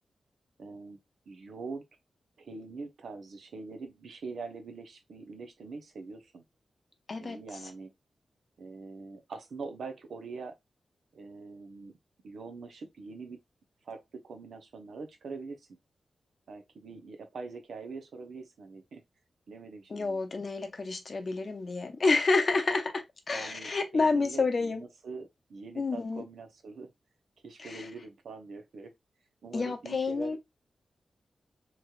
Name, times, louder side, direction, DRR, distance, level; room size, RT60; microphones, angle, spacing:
voice 1, 0.6-1.0 1.3-1.8 2.4-6.4 7.2-7.9 8.6-10.6 11.1-11.9 12.2-13.4 13.8-15.8 16.5-19.0 19.5-20.2 23.3-26.9 27.4-28.9 29.4-30.4, right 4 dB, 85° right, 0.7 m, -43 dB
voice 2, 7.1-7.6 19.9-24.8 25.8-26.2 27.6-27.9 29.5-30.4, left 3 dB, 40° left, 0.6 m, -29 dB
3.1 x 2.9 x 2.3 m
wide cardioid pair, 150°, 0 cm